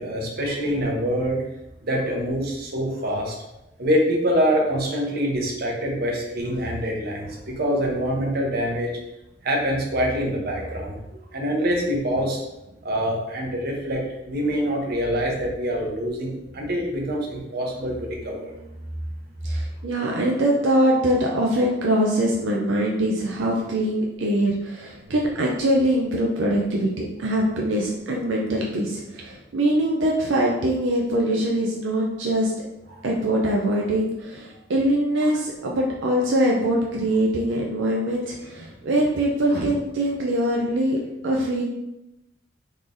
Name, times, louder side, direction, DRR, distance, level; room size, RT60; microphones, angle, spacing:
voice 1, 0.0-1.4 1.8-3.3 3.8-8.9 9.4-11.0 11.3-12.4 12.8-18.5 32.9-33.0 39.5-39.7, equal, 55° right, 0 dB, 0.8 m, -25 dB
voice 2, 19.4-32.7 33.0-41.0 41.2-41.6, right 1 dB, 80° right, -2 dB, 0.5 m, -23 dB
3.7 x 3.2 x 2.5 m, 0.91 s
head